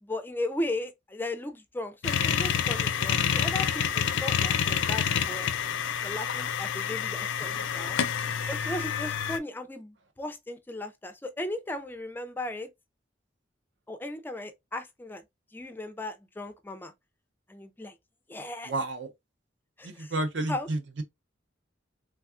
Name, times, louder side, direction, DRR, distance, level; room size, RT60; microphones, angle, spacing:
voice 1, 0.0-5.5 6.0-8.0 8.5-12.7 13.9-15.2 15.5-16.9 17.5-17.9 18.3-18.7 19.8-20.2 20.5-20.7, left 1 dB, 10° left, 0.4 m, -36 dB
sound 1, 2.0-9.4, left 8 dB, 75° left, 0.4 m, -28 dB
voice 2, 18.7-19.1 19.8-21.0, right 2 dB, 70° right, 0.6 m, -31 dB
3.4 x 2.3 x 2.3 m
head